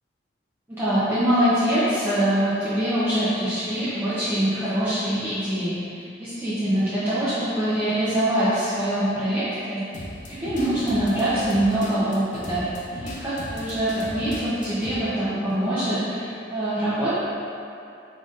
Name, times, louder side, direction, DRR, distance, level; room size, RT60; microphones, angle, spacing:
voice 1, 0.7-9.9 10.3-16.2 16.5-17.2, right 1 dB, 10° right, -14 dB, 0.7 m, -24 dB
sound 1, 9.9-14.9, left 1 dB, 40° left, 0.5 m, -37 dB
4.9 x 4.0 x 2.5 m, 2.6 s
head